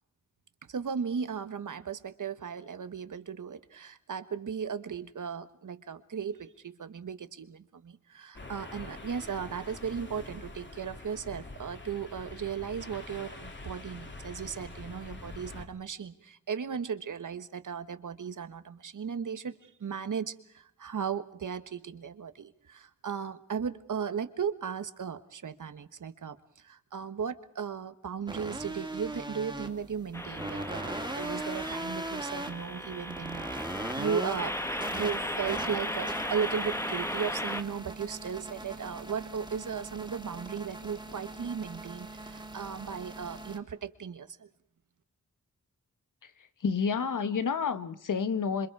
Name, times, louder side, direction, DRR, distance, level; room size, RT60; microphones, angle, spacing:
voice 1, 0.7-34.6 34.9-44.5, right 7 dB, 80° right, 1.4 m, -36 dB
sound 1, 8.3-15.7, left 2 dB, 35° left, 2.6 m, -45 dB
sound 2, 28.3-43.6, right 2 dB, 15° right, 2.4 m, -40 dB
sound 3, 30.1-37.6, left 1 dB, 10° left, 1.4 m, -36 dB
voice 2, 46.6-48.7, left 5 dB, 85° left, 1.2 m, -29 dB
27.0 x 25.0 x 4.8 m
wide cardioid pair, 115°, 30 cm